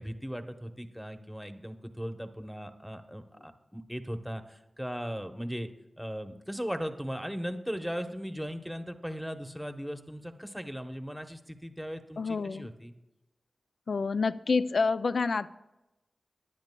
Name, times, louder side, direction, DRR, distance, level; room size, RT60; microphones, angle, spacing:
voice 1, 0.0-5.7 6.0-12.9, equal, ahead, 7 dB, 0.9 m, -38 dB
voice 2, 12.2-12.7 13.9-15.5, left 4 dB, 75° left, 14 dB, 0.3 m, -28 dB
19.0 x 10.5 x 2.3 m, 0.98 s
cardioid pair, 50°, 0 cm